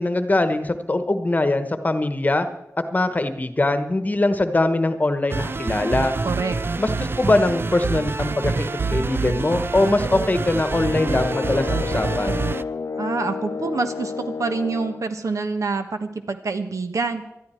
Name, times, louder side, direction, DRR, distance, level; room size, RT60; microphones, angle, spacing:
voice 1, 0.0-2.5 2.9-6.1 6.8-12.4, left 2 dB, 30° left, 9 dB, 1.2 m, -22 dB
sound 1, 5.3-12.6, right 4 dB, 40° right, 0.5 m, -26 dB
voice 2, 6.2-6.5 13.0-17.2, right 4 dB, 70° right, 7 dB, 1.3 m, -26 dB
sound 2, 10.8-15.1, left 5 dB, 65° left, 0.6 m, -30 dB
20.5 x 13.0 x 4.5 m, 0.87 s
wide cardioid pair, 85°, 6 cm